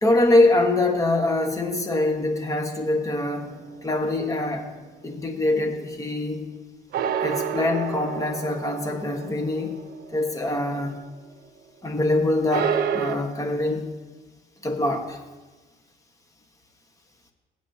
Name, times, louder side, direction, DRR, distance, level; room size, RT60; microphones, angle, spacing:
voice 1, 0.0-3.5 3.8-4.7 5.0-6.5 7.2-9.8 10.1-11.0 11.8-13.9 14.6-15.2, left 2 dB, 20° left, 4 dB, 1.3 m, -24 dB
sound 1, 3.4-4.8 6.9-11.0 11.3-11.4 12.5-13.2, right 8 dB, 65° right, 0.8 m, -30 dB
19.0 x 8.2 x 2.8 m, 1.2 s
cardioid pair, 110°, 17 cm